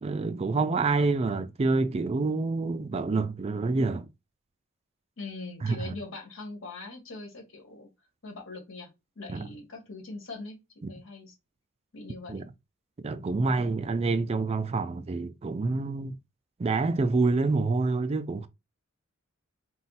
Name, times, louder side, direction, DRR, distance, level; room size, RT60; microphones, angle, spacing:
voice 1, 0.0-4.1 5.6-5.9 9.3-9.5 12.3-12.4 13.0-16.1 16.6-18.5, right 3 dB, 30° right, 0.3 m, -27 dB
voice 2, 5.2-7.9 8.2-8.9 9.2-10.6 10.9-11.3 11.9-12.4, left 3 dB, 65° left, 2.0 m, -41 dB
4.1 x 2.2 x 4.1 m
head